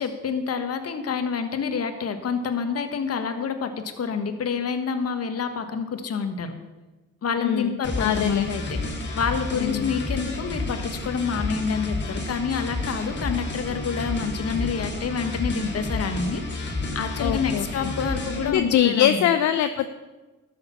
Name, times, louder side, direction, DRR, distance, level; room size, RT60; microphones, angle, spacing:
voice 1, 0.0-6.5 7.2-8.8 9.1-19.3, left 6 dB, 55° left, 8 dB, 1.5 m, -28 dB
voice 2, 7.4-8.5 9.5-10.0 17.2-17.9 18.4-19.9, left 10 dB, 70° left, 9 dB, 0.6 m, -23 dB
sound 1, 7.8-18.5, left 2 dB, 35° left, 2.4 m, -31 dB
13.0 x 6.7 x 7.1 m, 1.2 s
cardioid pair, 90°, 30 cm